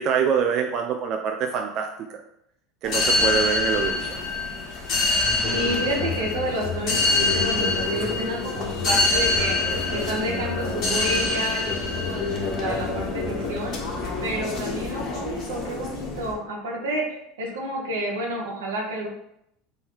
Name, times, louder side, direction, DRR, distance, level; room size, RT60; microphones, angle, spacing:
voice 1, 0.0-2.2 2.8-4.2, right 7 dB, 55° right, 3 dB, 0.4 m, -25 dB
sound 1, 2.8-16.3, left 3 dB, 50° left, 1.3 m, -25 dB
voice 2, 5.5-9.5 9.9-13.8 14.2-19.1, right 1 dB, 85° right, -2 dB, 1.0 m, -30 dB
3.7 x 2.7 x 4.6 m, 0.78 s
hypercardioid pair, 90°, 0 cm